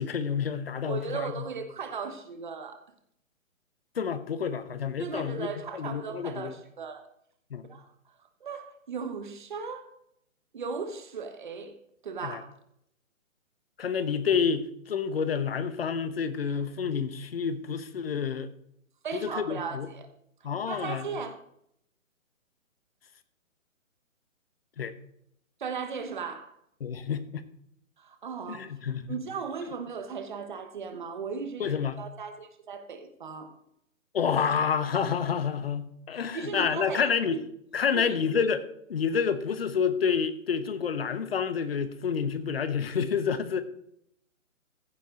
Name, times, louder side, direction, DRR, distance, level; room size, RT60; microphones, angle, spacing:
voice 1, 0.0-1.5 4.0-5.5 5.7-6.5 7.5-7.7 12.2-12.4 13.8-18.5 19.1-19.9 20.4-21.1 24.8-24.9 26.8-27.4 28.5-29.2 31.6-32.0 34.1-37.4 37.7-38.6 38.9-43.6, left 6 dB, 45° left, 12 dB, 1.0 m, -29 dB
voice 2, 0.9-2.8 5.0-7.1 7.7-9.9 10.5-11.8 12.0-12.5 19.0-20.1 20.4-21.4 25.6-26.6 28.0-28.7 29.1-33.5 36.3-37.5 37.9-38.2, right 5 dB, 35° right, 8 dB, 1.2 m, -37 dB
15.0 x 7.5 x 3.8 m, 0.73 s
hypercardioid pair, 170°, 41 cm